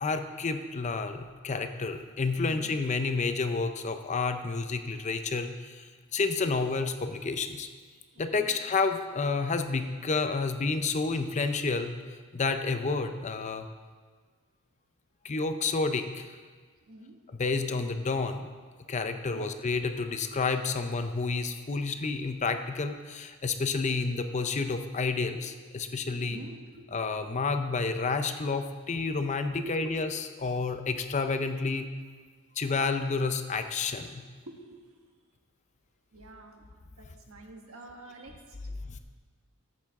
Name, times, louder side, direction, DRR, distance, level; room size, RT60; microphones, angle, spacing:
voice 1, 0.0-7.7 8.2-12.0 12.3-13.7 15.2-16.3 17.4-18.5 18.9-26.4 26.9-31.9 32.6-34.2 38.9-39.0, left 4 dB, 35° left, 8 dB, 0.5 m, -30 dB
voice 2, 2.4-2.8 7.9-8.6 16.9-17.2 19.1-19.5 26.3-26.9 29.6-29.9 34.2-34.8 36.1-36.7 37.0-38.6, right 1 dB, 75° right, 2 dB, 1.4 m, -47 dB
13.5 x 8.1 x 3.6 m, 1.5 s
head